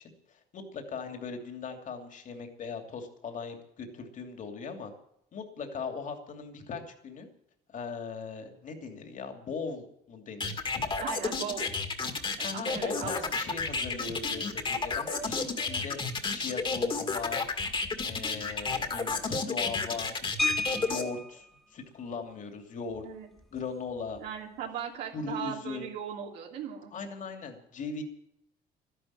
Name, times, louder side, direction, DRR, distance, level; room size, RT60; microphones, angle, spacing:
voice 1, 0.3-4.9 5.3-7.3 7.7-10.9 12.4-16.0 16.3-17.5 18.0-20.2 20.7-21.4 21.7-23.1 23.5-24.2 25.1-25.9 26.9-28.0, left 5 dB, 50° left, 5 dB, 2.8 m, -39 dB
sound 1, 10.4-21.0, left 4 dB, 30° left, 2.1 m, -31 dB
voice 2, 11.0-11.7 12.4-13.2 20.7-20.8 23.0-23.3 24.2-26.9, right 8 dB, 90° right, -1 dB, 3.0 m, -38 dB
sound 2, 20.4-21.5 22.9-23.0 23.4-23.6 24.0-24.2, left 2 dB, ahead, 1.5 m, -32 dB
13.0 x 11.0 x 8.9 m, 0.75 s
cardioid pair, 110°, 17 cm